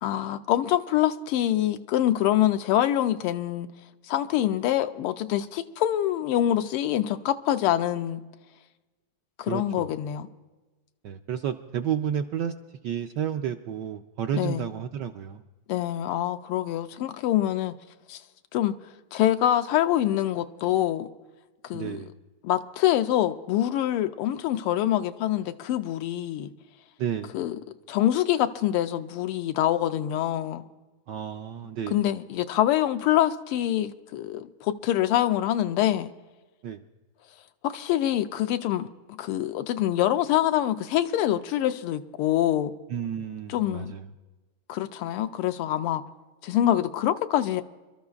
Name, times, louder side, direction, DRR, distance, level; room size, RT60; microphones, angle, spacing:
voice 1, 0.0-3.7 4.1-8.2 9.4-10.3 14.3-14.7 15.7-17.7 18.1-18.2 18.5-18.7 19.1-21.1 21.6-22.0 22.4-26.5 27.3-27.6 27.9-30.6 31.9-36.1 37.6-38.9 39.2-42.7 43.5-43.9 44.7-46.0 46.4-47.6, left 12 dB, 85° left, 1.5 m, -25 dB
voice 2, 9.5-9.9 11.0-12.5 12.8-15.4 21.7-22.1 27.0-27.4 31.1-32.0 36.6-36.8 42.9-44.1, right 9 dB, 80° right, 1.0 m, -31 dB
27.5 x 13.0 x 2.4 m
omnidirectional pair, 2.4 m